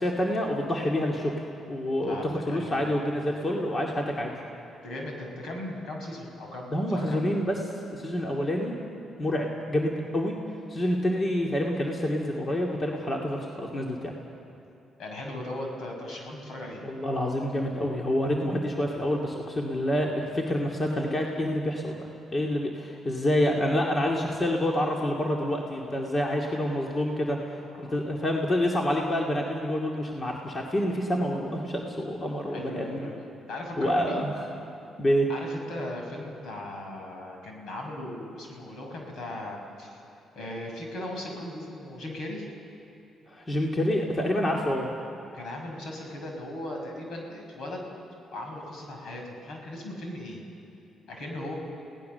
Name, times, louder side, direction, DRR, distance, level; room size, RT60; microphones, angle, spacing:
voice 1, 0.0-1.3 1.7-4.3 6.7-7.6 7.9-8.8 9.2-10.4 10.7-14.1 16.8-22.0 22.3-27.4 27.8-33.1 33.8-34.5 35.0-35.3 43.3-44.9, equal, 30° left, -1 dB, 2.4 m, -27 dB
voice 2, 2.1-2.9 4.8-7.4 15.0-16.9 27.8-28.0 32.5-33.2 33.5-34.2 35.3-40.0 40.3-42.5 45.3-47.9 48.3-50.4 51.1-51.5, left 1 dB, 70° left, 1 dB, 6.3 m, -38 dB
30.0 x 18.0 x 6.9 m, 2.9 s
cardioid pair, 90°, 0 cm